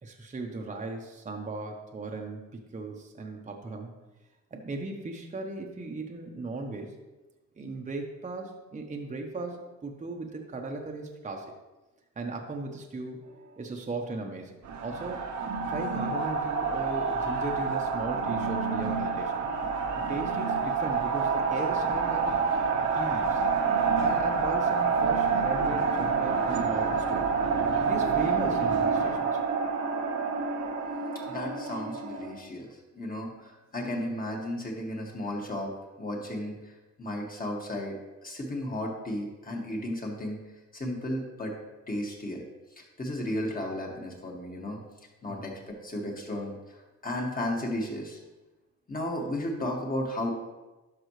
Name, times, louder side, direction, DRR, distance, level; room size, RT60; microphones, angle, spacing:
voice 1, 0.0-3.9 4.5-7.0 7.6-11.5 12.2-13.3 13.6-15.3 15.7-19.5 20.1-22.3 22.9-23.4 24.0-27.3 27.8-29.4 45.3-45.5, right 3 dB, 25° right, 1 dB, 1.0 m, -37 dB
sound 1, 14.6-32.4, right 5 dB, 70° right, 1.3 m, -28 dB
voice 2, 31.3-38.0 38.2-40.4 40.7-41.5 41.9-42.4 42.8-44.8 45.2-48.2 48.9-50.3, left 1 dB, 30° left, 0 dB, 2.0 m, -34 dB
11.5 x 5.3 x 3.2 m, 1.1 s
cardioid pair, 90°, 30 cm